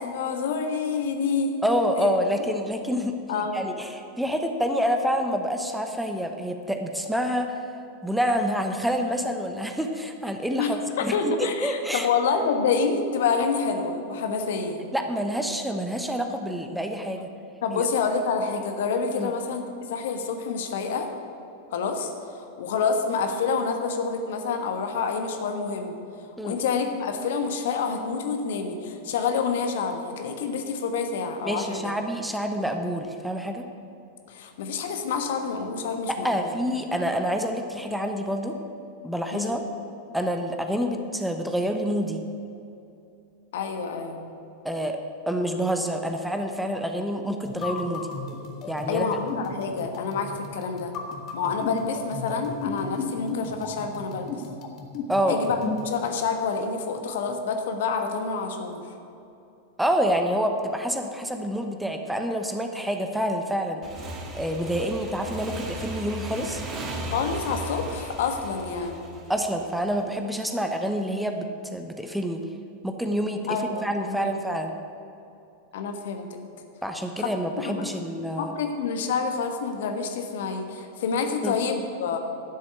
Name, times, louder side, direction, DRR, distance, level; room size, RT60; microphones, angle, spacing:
voice 1, 0.0-1.6 1.9-2.1 3.3-3.6 10.6-14.8 17.6-19.6 19.9-21.1 21.7-25.9 26.4-31.9 34.3-36.5 39.3-39.6 43.5-44.2 48.9-50.9 51.3-54.3 55.3-58.8 67.1-69.0 73.5-74.4 75.7-76.4 77.2-77.3 77.6-77.9 78.4-82.2, left 5 dB, 55° left, 5 dB, 1.3 m, -28 dB
voice 2, 1.6-7.5 8.0-12.1 14.9-17.3 17.7-17.8 19.2-19.3 26.4-26.6 31.4-33.7 36.1-38.6 39.0-39.6 40.1-42.2 44.6-45.0 45.3-48.1 48.7-49.1 55.1-55.4 59.8-63.8 64.3-66.6 69.3-72.4 72.8-74.8 76.8-78.5 81.4-81.6, equal, 5° right, 4 dB, 1.0 m, -27 dB
sound 1, 47.4-55.9, left 4 dB, 35° left, 1.5 m, -35 dB
Motorcycle / Engine, 63.8-70.2, right 1 dB, 30° right, 2.1 m, -36 dB
12.0 x 7.6 x 8.1 m, 2.7 s
figure-of-eight pair, 90°, 0 cm